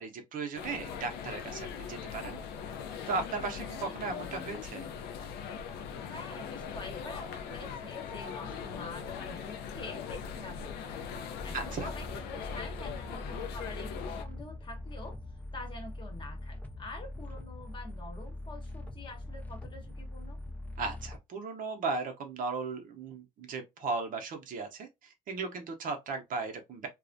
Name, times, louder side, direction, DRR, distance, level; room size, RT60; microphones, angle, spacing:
voice 1, 0.0-2.4 3.1-4.9 11.5-11.9 20.8-26.9, right 4 dB, 55° right, 0.6 m, -36 dB
sound 1, 0.5-14.2, left 7 dB, 75° left, 0.4 m, -40 dB
voice 2, 6.1-11.0 11.4-15.2 15.5-20.4, left 2 dB, 30° left, 0.9 m, -46 dB
sound 2, 11.3-21.2, left 1 dB, 10° left, 0.4 m, -42 dB
2.3 x 2.1 x 2.5 m
cardioid pair, 110°, 17 cm